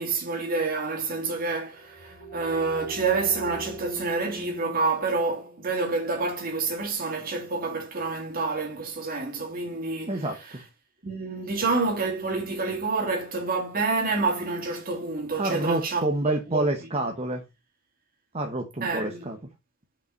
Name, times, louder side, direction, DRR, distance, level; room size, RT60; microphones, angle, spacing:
voice 1, 0.0-10.1 11.0-16.0 16.5-16.7 18.8-19.2, right 3 dB, 45° right, 2.6 m, -28 dB
sound 1, 1.7-7.2, right 3 dB, 55° left, 2.9 m, -43 dB
voice 2, 10.1-10.6 15.4-17.4 18.3-19.4, right 2 dB, 30° right, 1.0 m, -28 dB
5.7 x 5.4 x 5.1 m
head